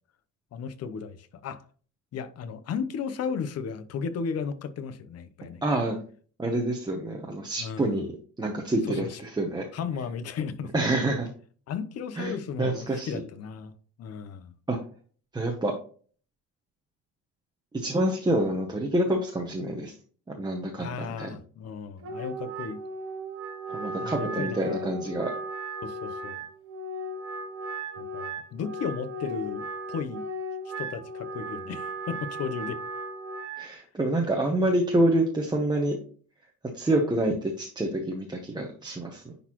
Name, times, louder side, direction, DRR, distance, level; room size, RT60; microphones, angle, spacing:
voice 1, 0.5-1.6 2.1-5.6 7.6-7.9 8.9-9.2 9.7-10.7 11.7-13.7 14.0-14.5 20.8-22.8 24.0-24.9 25.8-26.5 28.0-30.2 30.8-32.8, left 6 dB, 45° left, 0.7 m, -35 dB
voice 2, 5.6-6.0 6.4-8.1 8.4-9.7 10.7-11.3 12.2-13.1 14.7-14.8 15.3-15.7 17.7-19.9 20.3-21.4 23.7-25.3 33.6-36.0 36.7-39.3, right 1 dB, 10° right, 0.8 m, -27 dB
Wind instrument woodwind instrument, 22.0-33.7, right 2 dB, 40° right, 0.9 m, -36 dB
10.0 x 4.1 x 3.0 m
cardioid pair, 140°, 35 cm